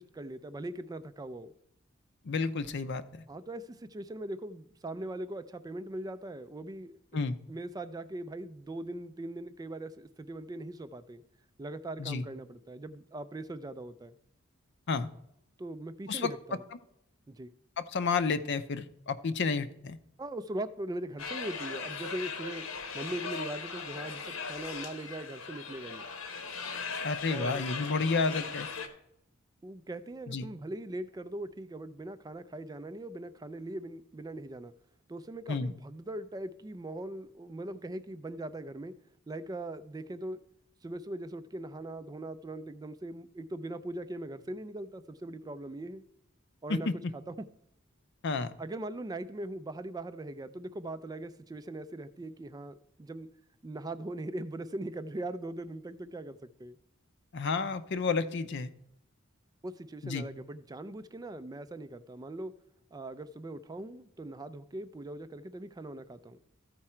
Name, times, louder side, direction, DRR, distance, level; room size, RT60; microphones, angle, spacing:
voice 1, 0.0-1.5 3.3-11.2 11.6-14.2 15.6-16.6 17.3-17.5 20.2-22.7 22.9-26.0 27.3-27.7 29.6-34.7 35.1-38.9 39.3-40.4 40.8-46.0 46.6-46.9 47.1-47.5 48.6-53.3 53.6-56.8 59.6-62.5 62.9-66.4, right 1 dB, 20° right, 13 dB, 0.3 m, -40 dB
voice 2, 2.3-3.2 7.1-7.4 12.0-12.2 14.9-15.1 16.1-16.3 17.8-20.0 27.0-28.7 30.3-30.5 35.5-35.7 46.7-46.9 48.2-48.5 57.3-58.7 60.0-60.2, left 4 dB, 55° left, 12 dB, 0.6 m, -31 dB
sound 1, 21.2-28.9, left 5 dB, 80° left, 1.1 m, -39 dB
13.5 x 4.7 x 4.3 m, 0.78 s
head